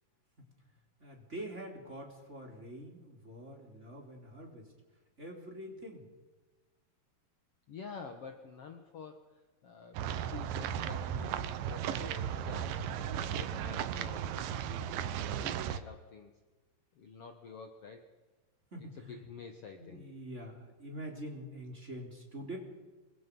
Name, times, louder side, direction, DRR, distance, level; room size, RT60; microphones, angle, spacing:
voice 1, 1.0-4.7 5.2-6.1 18.7-19.2 19.8-22.6, right 1 dB, 20° right, 2 dB, 4.0 m, -45 dB
voice 2, 7.7-9.2 9.6-12.8 13.2-14.9 15.4-16.3 17.0-18.0 19.1-20.0, left 5 dB, 55° left, 5 dB, 2.0 m, -49 dB
sound 1, 9.9-15.8, right 9 dB, 90° right, 2.7 m, -36 dB
27.0 x 23.0 x 5.5 m, 1.2 s
omnidirectional pair, 3.9 m